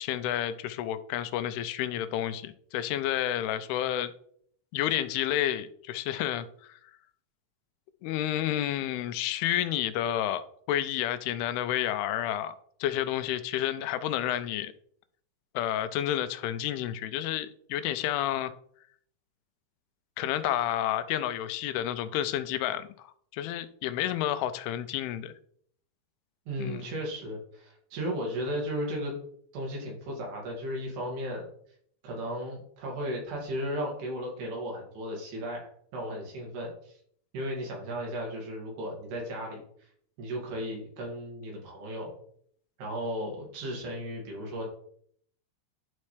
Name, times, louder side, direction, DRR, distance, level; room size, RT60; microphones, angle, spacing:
voice 1, 0.0-4.1 4.7-6.8 8.0-10.4 10.7-12.6 12.8-14.7 15.5-18.5 20.2-25.3 26.6-26.8, left 12 dB, 85° left, 12 dB, 2.5 m, -30 dB
voice 2, 26.5-29.1 29.5-31.5 32.0-36.9 37.3-39.6 40.2-42.1 42.8-44.7, equal, 85° right, -1 dB, 4.2 m, -35 dB
11.5 x 4.2 x 3.3 m, 0.63 s
omnidirectional pair, 4.5 m